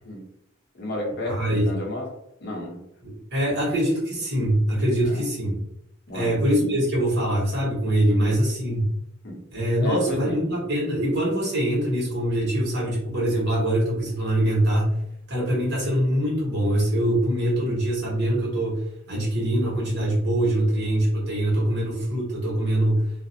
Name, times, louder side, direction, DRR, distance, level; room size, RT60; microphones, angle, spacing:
voice 1, 0.7-2.1 2.4-2.8 5.1-5.2 6.1-6.4 8.1-8.4 9.2-9.4 9.8-10.4, left 1 dB, 55° left, -1 dB, 0.7 m, -31 dB
voice 2, 1.3-1.7 3.0-5.6 6.1-8.9 9.5-15.0 15.3-23.0, right 1 dB, 55° right, -4 dB, 1.0 m, -23 dB
2.4 x 2.0 x 2.6 m, 0.79 s
head